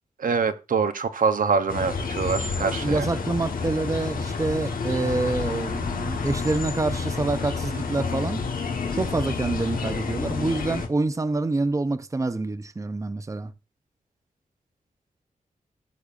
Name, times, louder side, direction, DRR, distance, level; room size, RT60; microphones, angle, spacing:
voice 1, 0.2-3.1, right 5 dB, 80° right, 0.7 m, -24 dB
sound 1, 1.7-10.9, left 5 dB, 85° left, 1.2 m, -29 dB
voice 2, 2.8-8.5 8.9-13.5, right 3 dB, 20° right, 0.6 m, -27 dB
17.0 x 6.7 x 2.5 m
wide cardioid pair, 135°, 14 cm